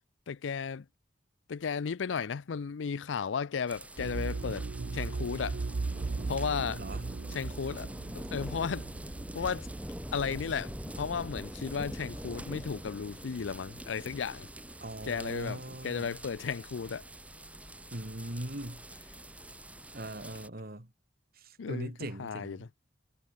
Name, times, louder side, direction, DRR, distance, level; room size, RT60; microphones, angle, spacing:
voice 1, 0.3-0.9 1.5-5.6 6.3-6.8 7.3-7.9 8.1-8.9 9.3-9.7 10.1-14.5 15.0-17.0 21.6-22.7, left 6 dB, 80° left, 0.5 m, -34 dB
sound 1, 3.7-20.5, right 1 dB, 10° right, 2.8 m, -44 dB
sound 2, 4.0-11.7 12.0-12.1, right 3 dB, 75° right, 0.6 m, -38 dB
voice 2, 6.8-7.1 14.8-16.2 17.9-18.8 19.9-20.9 21.3-22.7, right 1 dB, 55° right, 3.3 m, -40 dB
head